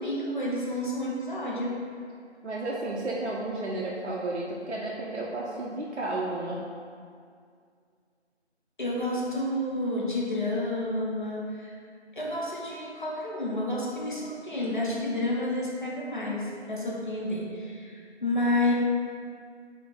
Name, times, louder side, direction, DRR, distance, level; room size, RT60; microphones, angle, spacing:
voice 1, 0.0-1.8 8.8-11.8 12.1-18.7, left 1 dB, 45° left, -4 dB, 0.5 m, -30 dB
voice 2, 2.4-6.6, right 2 dB, 75° right, -4 dB, 0.5 m, -32 dB
3.8 x 2.0 x 3.6 m, 2.2 s
figure-of-eight pair, 170°, 35 cm